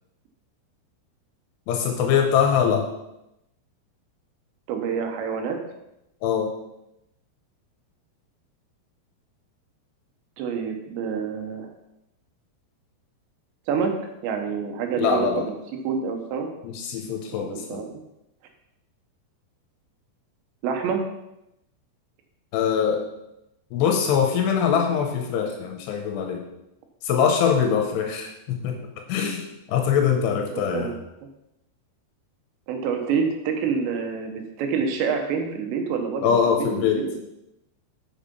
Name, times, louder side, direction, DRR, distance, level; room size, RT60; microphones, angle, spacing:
voice 1, 1.7-2.9 6.2-6.5 15.0-15.5 16.6-17.8 22.5-23.0 23.7-26.5 27.0-30.9 36.2-37.1, left 7 dB, 80° left, 3 dB, 3.0 m, -23 dB
voice 2, 4.7-5.6 10.4-11.7 13.7-14.0 14.2-15.4 15.8-16.5 17.3-17.9 20.6-21.0 30.4-31.0 32.7-36.7 37.0-37.1, right 6 dB, 85° right, 4 dB, 3.4 m, -27 dB
7.2 x 7.1 x 5.4 m, 0.87 s
omnidirectional pair, 5.0 m